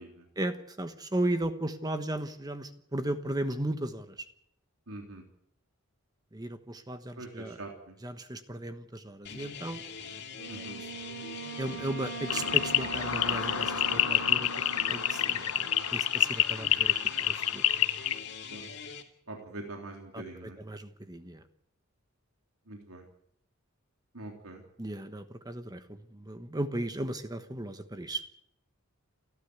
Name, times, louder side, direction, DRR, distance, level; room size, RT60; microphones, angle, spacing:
voice 1, 0.4-4.2 6.3-7.6 8.0-9.8 10.6-10.9 11.6-14.5 14.9-17.6 20.1-21.4 24.8-28.2, right 1 dB, 20° right, 9 dB, 1.2 m, -36 dB
voice 2, 4.9-5.2 7.1-7.9 10.5-10.8 18.5-18.6 19.3-20.6 22.7-23.0 24.1-24.6, right 2 dB, 80° right, 2 dB, 3.4 m, -43 dB
sound 1, 9.2-19.0, left 6 dB, 50° left, 2.7 m, -43 dB
Wind instrument woodwind instrument, 10.4-15.8, right 5 dB, 50° right, 5.0 m, -41 dB
sound 2, 12.3-18.2, left 11 dB, 80° left, 1.1 m, -28 dB
29.5 x 12.0 x 8.1 m, 0.72 s
head